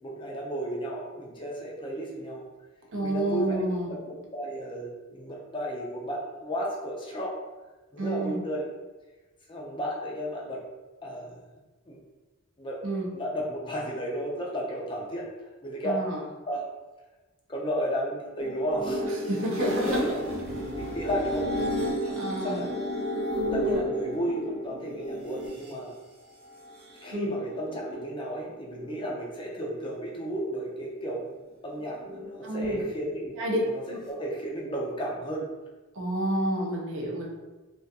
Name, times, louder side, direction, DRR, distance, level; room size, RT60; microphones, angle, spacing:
voice 1, 0.0-2.4 3.0-3.6 3.9-7.4 7.9-8.6 9.5-10.6 11.0-11.4 11.9-12.0 12.6-12.8 13.1-15.3 15.6-16.0 16.5-16.7 17.5-19.0 19.6-20.2 20.8-21.5 22.0-22.1 22.4-22.7 23.5-26.0 27.0-31.3 31.6-33.3 33.6-33.8 34.1-35.5, equal, 25° left, -2 dB, 0.4 m, -33 dB
voice 2, 2.9-4.0 8.0-8.4 12.8-13.1 15.8-16.2 19.1-20.2 22.1-22.7 27.1-27.3 32.4-32.9 33.4-33.6 33.9-34.0 35.9-37.3, right 1 dB, 60° right, -1 dB, 0.6 m, -29 dB
sound 1, 18.4-25.7 26.6-28.2 28.5-29.2 31.6-32.5, equal, 85° right, 1.0 m, -32 dB
2.3 x 2.2 x 2.7 m, 1.2 s
head